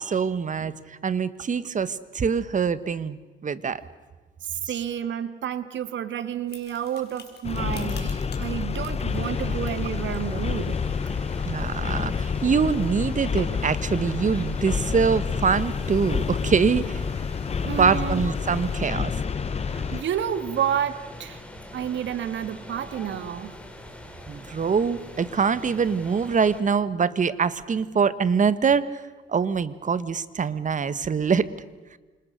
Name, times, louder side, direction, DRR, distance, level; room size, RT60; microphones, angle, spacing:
voice 1, 0.0-3.8 11.4-17.0 17.8-19.2 24.3-29.0 29.3-31.5, right 6 dB, 40° right, 1.4 m, -24 dB
voice 2, 4.6-10.9 17.7-18.2 19.7-21.4 21.7-23.6, right 9 dB, 70° right, 1.8 m, -30 dB
sound 1, 6.5-18.9, left 6 dB, 55° left, 4.8 m, -50 dB
sound 2, 7.4-20.0, left 6 dB, 30° left, 0.8 m, -28 dB
sound 3, 9.1-26.6, left 1 dB, 5° left, 5.1 m, -43 dB
28.5 x 26.5 x 6.6 m
cardioid pair, 90°, 20 cm